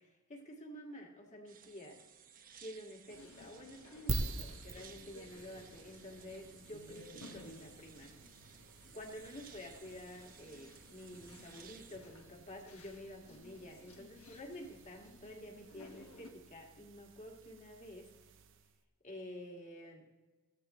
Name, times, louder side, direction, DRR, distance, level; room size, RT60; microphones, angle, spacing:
voice 1, 0.0-2.0 2.6-8.1 8.9-18.1 19.0-20.0, left 1 dB, 35° left, 1 dB, 2.1 m, -50 dB
sound 1, 1.5-12.0, right 7 dB, 40° right, 1.0 m, -59 dB
sound 2, 3.1-16.3, left 1 dB, 70° left, 1.7 m, -58 dB
sound 3, 4.1-18.8, right 2 dB, 60° right, 0.9 m, -47 dB
17.0 x 14.5 x 3.2 m, 1.2 s
head